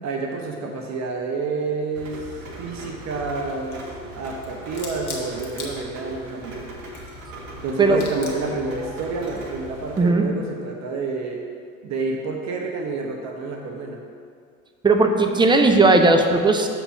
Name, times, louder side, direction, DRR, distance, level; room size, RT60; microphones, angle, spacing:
voice 1, 0.0-6.6 7.6-11.5 11.8-14.0, right 3 dB, 40° right, 2 dB, 0.9 m, -29 dB
Rain, 2.0-10.0, right 1 dB, 70° right, 1.5 m, -39 dB
sound 1, 3.1-3.9 4.3-6.3 6.7-7.6 7.9-8.6 9.2-9.5, left 3 dB, 90° left, 1.5 m, -39 dB
voice 2, 14.8-16.7, right 3 dB, 10° right, 4 dB, 0.6 m, -16 dB
6.8 x 4.5 x 5.7 m, 2.2 s
hypercardioid pair, 80°, 41 cm